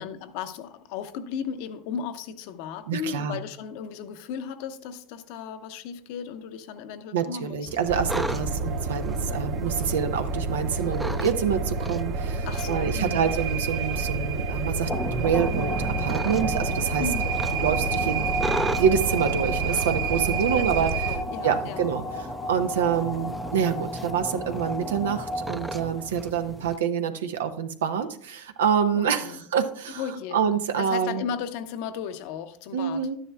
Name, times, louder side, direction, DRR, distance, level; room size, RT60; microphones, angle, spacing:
voice 1, 0.0-7.7 8.3-8.6 12.5-13.3 17.0-17.4 20.1-20.7 21.1-21.8 28.9-29.4 30.0-30.4 30.8-33.1, left 7 dB, 65° left, 0.8 m, -35 dB
voice 2, 2.9-3.4 7.1-17.0 17.6-18.3 18.8-20.9 21.4-30.0 30.3-31.2 32.7-33.1, right 7 dB, 90° right, 0.8 m, -26 dB
sound 1, 7.6-26.8, right 1 dB, 5° right, 0.5 m, -38 dB
sound 2, 7.9-21.2, right 4 dB, 65° right, 1.4 m, -29 dB
sound 3, 14.9-26.3, left 1 dB, 15° left, 0.9 m, -33 dB
12.0 x 10.0 x 2.3 m
supercardioid pair, 105°, 0 cm